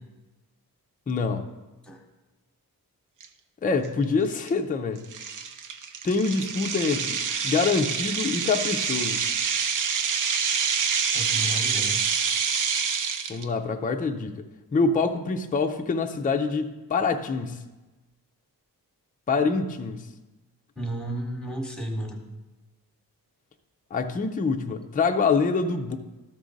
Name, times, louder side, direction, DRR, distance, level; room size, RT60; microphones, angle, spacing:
voice 1, 1.1-1.5 3.6-5.0 6.0-7.2 7.4-9.3 13.3-14.4 14.7-17.6 19.3-20.1 23.9-26.0, left 4 dB, 25° left, 5 dB, 0.4 m, -25 dB
sound 1, 3.2-3.3 3.9-4.0 4.5-4.6 5.1-13.4, right 6 dB, 55° right, 0.6 m, -27 dB
voice 2, 11.1-12.0 20.8-22.2, right 1 dB, ahead, 2 dB, 1.0 m, -32 dB
13.0 x 5.0 x 3.9 m, 1.1 s
wide cardioid pair, 175°, 38 cm